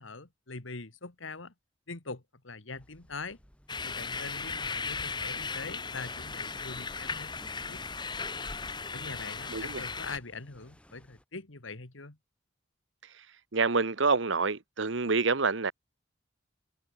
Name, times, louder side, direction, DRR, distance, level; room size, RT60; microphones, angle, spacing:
voice 1, 0.0-1.5 1.9-3.4 3.8-7.8 8.9-12.2, left 4 dB, 80° left, 2.1 m, -43 dB
sound 1, 2.7-11.3, equal, 5° left, 5.5 m, -59 dB
sound 2, 3.7-10.2, left 4 dB, 20° left, 1.7 m, -37 dB
voice 2, 9.5-9.8 13.5-15.7, right 4 dB, 70° right, 1.1 m, -27 dB
open air
head